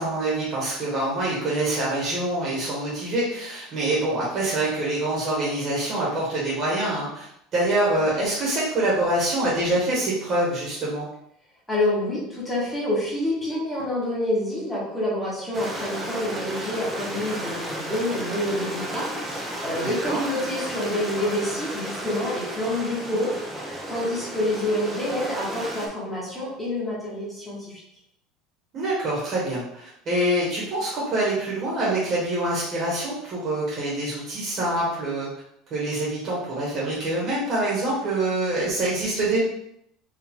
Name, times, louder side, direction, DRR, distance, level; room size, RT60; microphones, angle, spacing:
voice 1, 0.0-11.1 19.8-20.2 28.7-35.3 35.7-39.4, right 1 dB, 30° right, -6 dB, 1.2 m, -25 dB
voice 2, 11.7-27.8, left 1 dB, 5° left, -7 dB, 1.2 m, -27 dB
Stream, 15.5-25.9, right 1 dB, 10° right, 0.6 m, -33 dB
4.8 x 2.6 x 3.7 m, 0.74 s
cardioid pair, 175°, 0 cm